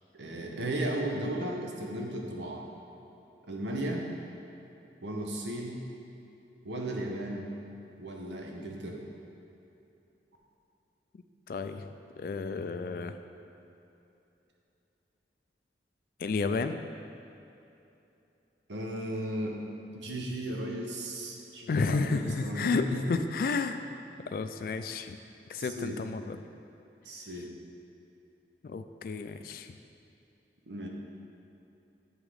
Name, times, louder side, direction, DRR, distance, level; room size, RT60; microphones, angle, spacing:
voice 1, 0.1-2.6 3.4-4.0 5.0-5.9 6.6-7.5 8.0-9.0 18.7-19.6 19.9-23.1 25.6-26.0 27.0-27.5 30.7-30.9, right 1 dB, 90° right, 0 dB, 0.9 m, -35 dB
voice 2, 11.5-13.2 16.2-16.8 21.7-23.8 24.3-25.2 25.5-26.4 28.6-29.7, left 4 dB, 55° left, 9 dB, 0.3 m, -31 dB
7.9 x 3.8 x 4.8 m, 2.9 s
head